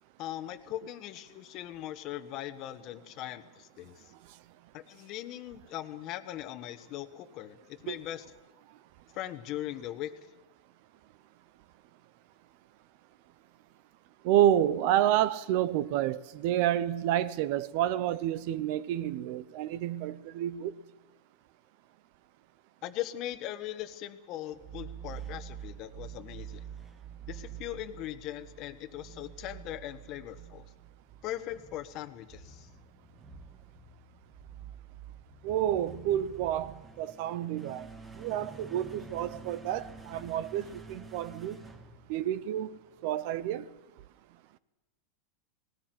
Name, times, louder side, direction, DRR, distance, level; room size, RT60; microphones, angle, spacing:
voice 1, 0.2-4.0 4.7-8.2 9.1-10.1 22.8-26.6 27.3-30.6 31.2-32.7, left 13 dB, 40° left, 1.3 m, -40 dB
voice 2, 14.2-20.7 35.4-37.9 38.2-41.6 42.1-43.7, right 11 dB, 55° right, 0.8 m, -29 dB
sound 1, 24.5-42.7, right 7 dB, 15° right, 1.5 m, -48 dB
19.0 x 18.0 x 7.8 m
supercardioid pair, 150°, 0 cm